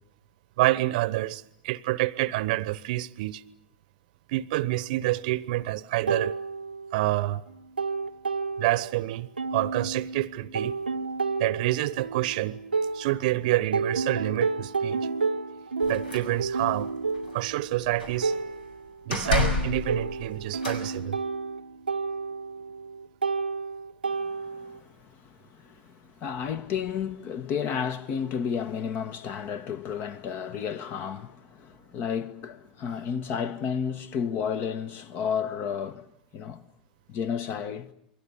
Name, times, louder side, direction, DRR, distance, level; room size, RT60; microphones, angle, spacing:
voice 1, 0.6-3.4 4.3-6.4 6.9-7.4 8.6-10.8 11.4-12.6 12.9-15.1 15.9-16.9 17.3-18.3 19.1-21.2, right 17 dB, 55° right, 1.0 m, -27 dB
sound 1, 6.1-7.2 7.5-9.0 9.4-13.4 13.7-24.8, right 4 dB, 85° right, 0.9 m, -31 dB
sound 2, 15.8-16.8 17.1-17.5 17.7-18.4 19.1-20.9, left 4 dB, 75° left, 5.6 m, -30 dB
voice 2, 24.1-36.0 36.3-36.6 37.1-37.9, left 7 dB, 40° left, 1.5 m, -32 dB
28.0 x 22.5 x 7.1 m
figure-of-eight pair, 90°, 5 cm